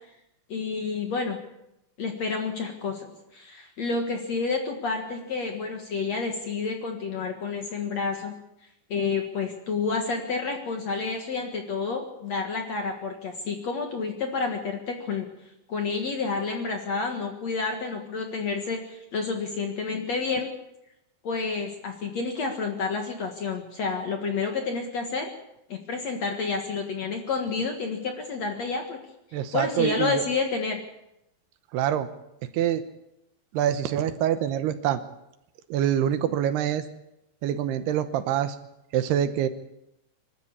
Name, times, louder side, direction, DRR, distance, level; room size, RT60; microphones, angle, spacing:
voice 1, 0.5-1.4 2.0-8.3 8.9-15.3 15.7-20.5 21.2-25.3 25.7-29.0 29.3-30.8, left 4 dB, 55° left, 4 dB, 2.1 m, -29 dB
voice 2, 29.3-30.2 31.7-32.1 32.5-32.8 33.5-35.0 35.7-36.9 37.4-38.6 38.9-39.5, right 10 dB, 75° right, 11 dB, 2.8 m, -25 dB
25.0 x 13.0 x 8.5 m, 0.87 s
omnidirectional pair, 5.0 m